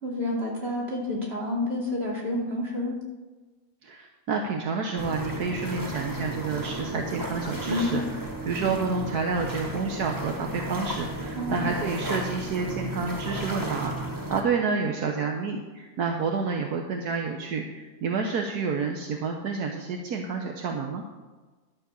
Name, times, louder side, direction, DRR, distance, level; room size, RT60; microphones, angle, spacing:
voice 1, 0.0-3.0 7.7-8.1 11.4-11.7, left 1 dB, 40° right, -3 dB, 3.1 m, -29 dB
voice 2, 3.8-21.0, right 4 dB, 75° right, 2 dB, 1.5 m, -29 dB
sound 1, 5.0-14.4, right 1 dB, 15° right, 1.2 m, -34 dB
12.0 x 6.3 x 7.0 m, 1.3 s
omnidirectional pair, 1.7 m